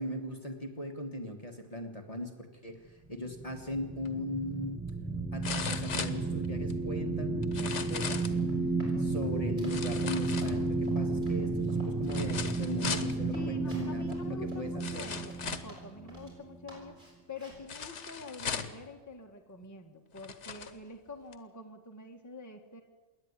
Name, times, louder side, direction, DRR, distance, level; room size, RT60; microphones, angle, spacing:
voice 1, 0.0-4.9 5.3-8.3 9.0-15.1, left 1 dB, 30° left, 3 dB, 1.8 m, -39 dB
sound 1, 3.2-16.9, right 3 dB, 5° right, 0.9 m, -33 dB
sound 2, 4.1-4.2 5.4-6.7 7.4-8.4 9.7-10.9 12.1-13.1 14.1-14.2 14.8-15.8 17.7-18.8 19.6-19.7 20.2-20.7 21.3-21.4, left 6 dB, 75° left, 1.5 m, -37 dB
Run, 7.8-16.4 16.7-17.7, equal, 40° right, 6.2 m, -52 dB
voice 2, 8.9-9.8 13.3-17.0 17.3-22.8, left 3 dB, 15° left, 3 dB, 1.7 m, -47 dB
27.0 x 11.0 x 9.8 m, 1.3 s
omnidirectional pair, 1.2 m